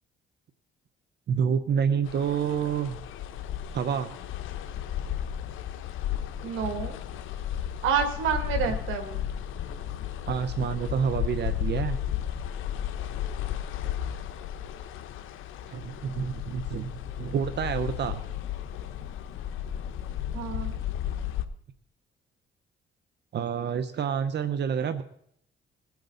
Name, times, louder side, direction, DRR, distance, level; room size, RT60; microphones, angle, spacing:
voice 1, 1.3-3.0 3.7-4.1 10.3-12.0 15.7-16.9 17.2-18.2 23.3-25.0, right 7 dB, 60° right, 11 dB, 1.0 m, -28 dB
sound 1, 2.0-21.5, left 10 dB, 85° left, 1.0 m, -34 dB
voice 2, 6.4-7.0 7.8-9.2 20.3-20.8, right 7 dB, 90° right, 6 dB, 2.4 m, -28 dB
21.0 x 9.4 x 4.0 m, 0.68 s
cardioid pair, 90°, 20 cm